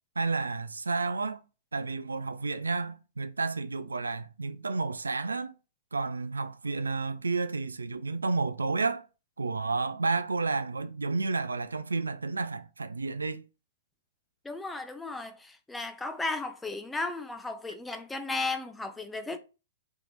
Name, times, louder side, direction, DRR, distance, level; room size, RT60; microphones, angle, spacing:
voice 1, 0.2-1.4 1.7-5.5 5.9-9.1 9.4-13.4, right 3 dB, 80° right, 0.3 m, -31 dB
voice 2, 14.4-19.4, left 3 dB, 10° left, 0.5 m, -35 dB
3.4 x 2.9 x 3.9 m
figure-of-eight pair, 110°, 0 cm